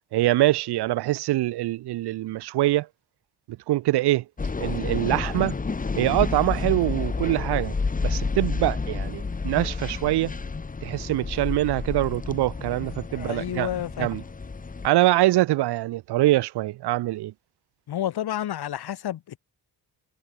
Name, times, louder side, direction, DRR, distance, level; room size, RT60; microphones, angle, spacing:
voice 1, 0.1-2.9 3.7-4.2 4.6-5.6 6.0-7.8 8.0-10.3 10.8-13.7 14.0-14.2 14.8-17.3, right 16 dB, 85° right, 0.6 m, -24 dB
sound 1, 4.4-14.9, left 4 dB, 20° left, 1.6 m, -30 dB
voice 2, 13.1-14.2 17.9-19.4, left 11 dB, 75° left, 1.9 m, -30 dB
wide cardioid pair, 160°, 39 cm